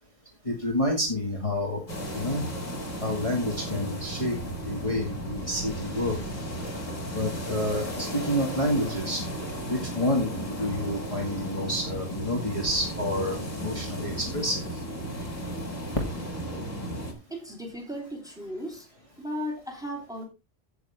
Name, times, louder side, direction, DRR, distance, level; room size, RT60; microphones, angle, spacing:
voice 1, 0.5-2.4 3.0-4.3 4.7-6.2 7.1-9.2 9.7-13.4 13.6-14.6, left 1 dB, 25° left, 0 dB, 2.5 m, -29 dB
sound 1, 1.9-17.1, right 1 dB, 90° left, 3.6 m, -35 dB
voice 2, 17.3-18.9 19.2-20.2, equal, 5° right, 1 dB, 3.5 m, -36 dB
16.0 x 6.9 x 3.6 m, 0.27 s
omnidirectional pair, 1.3 m